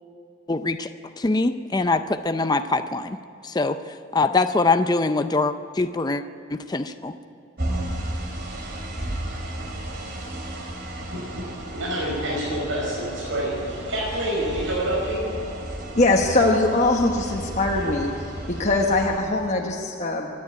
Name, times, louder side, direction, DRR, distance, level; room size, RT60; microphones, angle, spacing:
voice 1, 0.5-0.9 1.2-3.2 3.4-6.2 6.5-7.1, left 3 dB, 20° left, 9 dB, 0.5 m, -23 dB
sound 1, 7.6-19.2, right 1 dB, 50° right, 3.1 m, -33 dB
voice 2, 11.7-15.2, right 1 dB, 70° right, -4 dB, 5.5 m, -27 dB
voice 3, 16.0-18.1 18.5-20.3, left 2 dB, 35° left, 0 dB, 1.2 m, -21 dB
26.0 x 10.5 x 9.6 m, 2.7 s
head